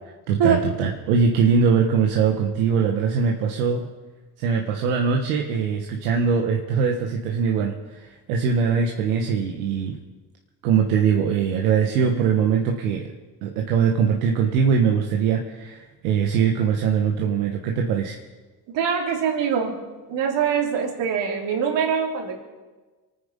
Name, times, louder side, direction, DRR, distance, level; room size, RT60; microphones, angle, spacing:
voice 1, 0.3-3.9 4.4-10.0 10.6-13.1 13.4-18.2, right 6 dB, 90° right, 2 dB, 1.3 m, -22 dB
voice 2, 18.7-19.8 20.1-22.4, right 7 dB, 70° right, 2 dB, 3.3 m, -23 dB
24.0 x 9.6 x 5.3 m, 1.3 s
supercardioid pair, 65°, 45 cm